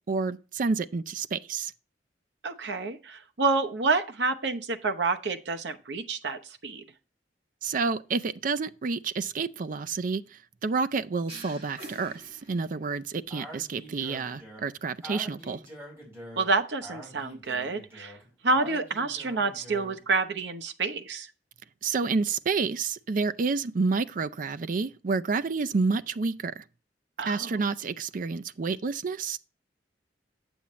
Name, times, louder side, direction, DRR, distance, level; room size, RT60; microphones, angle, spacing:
voice 1, 0.1-1.7 7.6-15.6 21.8-26.6 27.3-29.4, right 4 dB, 50° right, 0.4 m, -29 dB
voice 2, 2.4-6.8 16.4-18.1 18.4-21.3 27.2-27.5, right 3 dB, 75° right, 0.8 m, -28 dB
sound 1, 11.3-13.0, right 1 dB, 35° right, 1.8 m, -46 dB
Speech, 13.3-20.0, equal, 15° right, 4.7 m, -45 dB
8.5 x 7.1 x 3.1 m
head